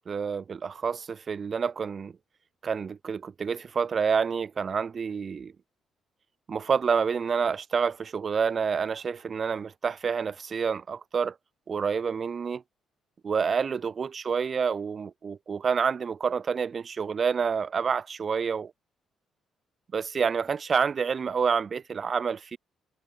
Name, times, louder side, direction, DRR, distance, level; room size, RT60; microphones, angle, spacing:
voice 1, 0.1-2.1 2.6-5.5 6.5-11.3 11.7-12.6 13.2-18.7 19.9-22.6, right 6 dB, 45° right, 1.3 m, -28 dB
cardioid pair, 90°, 0 cm